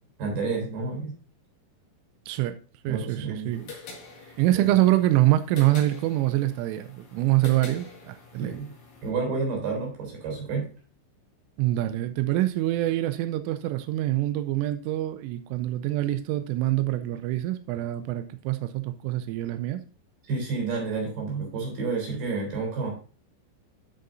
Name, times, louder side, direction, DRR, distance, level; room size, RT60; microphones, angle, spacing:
voice 1, 0.2-1.2 2.9-3.7 4.2-4.7 8.4-8.7 9.0-10.7 20.3-22.9, right 4 dB, 55° right, 5.5 m, -30 dB
voice 2, 2.3-2.6 2.8-3.6 4.4-8.6 11.6-19.8, right 15 dB, 90° right, 3.2 m, -25 dB
sound 1, 3.5-9.1, left 4 dB, 55° left, 3.3 m, -46 dB
12.5 x 6.5 x 2.6 m
omnidirectional pair, 5.6 m